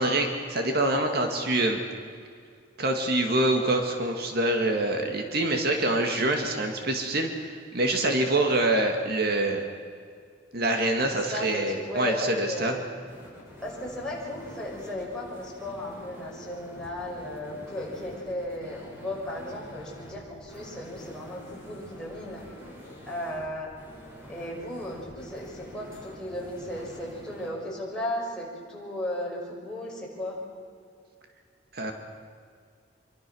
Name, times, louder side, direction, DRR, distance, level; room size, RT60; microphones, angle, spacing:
voice 1, 0.0-1.8 2.8-9.6 10.5-12.8 31.7-31.9, right 2 dB, 55° right, 3 dB, 2.1 m, -25 dB
voice 2, 11.0-12.8 13.6-22.4 23.1-23.7 24.3-30.4, left 1 dB, 5° left, -4 dB, 6.2 m, -35 dB
sound 1, 13.1-27.5, equal, 15° right, 6.3 m, -47 dB
26.0 x 24.0 x 6.4 m, 2.2 s
head